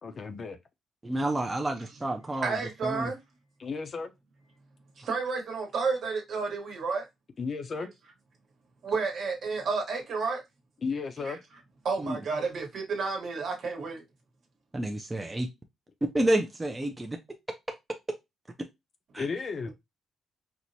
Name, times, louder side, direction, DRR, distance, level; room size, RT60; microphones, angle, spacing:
voice 1, 0.0-0.6 3.6-4.1 7.4-7.9 10.8-11.4 19.2-19.7, left 4 dB, 45° left, 0.5 m, -34 dB
voice 2, 1.0-2.6 2.8-3.1 5.0-5.1 12.0-12.2 14.7-15.5 16.1-17.2 19.1-19.2, right 1 dB, 15° right, 0.4 m, -29 dB
voice 3, 2.4-3.2 5.0-7.0 8.8-10.4 11.2-11.4 11.8-14.0, right 4 dB, 60° right, 1.2 m, -31 dB
4.5 x 2.0 x 2.7 m
cardioid pair, 115°, 0 cm